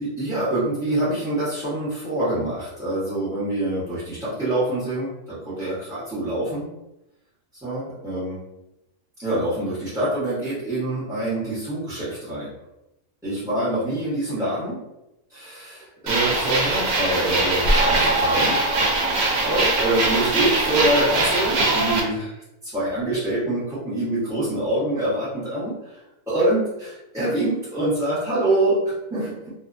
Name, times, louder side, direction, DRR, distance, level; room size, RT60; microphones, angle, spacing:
voice 1, 0.0-6.7 7.6-8.4 9.2-12.5 13.2-14.8 15.3-18.6 19.4-26.0 26.3-29.5, right 1 dB, 5° right, -13 dB, 0.7 m, -25 dB
sound 1, 16.1-22.0, right 2 dB, 70° right, 0.9 m, -21 dB
2.7 x 2.1 x 2.5 m, 0.90 s
omnidirectional pair, 1.6 m